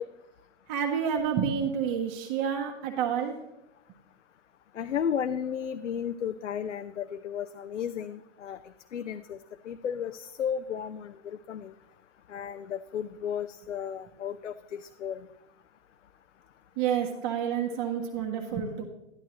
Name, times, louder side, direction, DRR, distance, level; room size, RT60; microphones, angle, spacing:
voice 1, 0.7-3.4 16.8-18.8, right 8 dB, 40° right, 0 dB, 1.5 m, -29 dB
voice 2, 4.7-8.6 8.9-9.4 9.6-11.7 12.3-15.3, left 8 dB, 85° left, 9 dB, 0.5 m, -34 dB
11.5 x 11.0 x 3.1 m, 0.92 s
figure-of-eight pair, 105°, 36 cm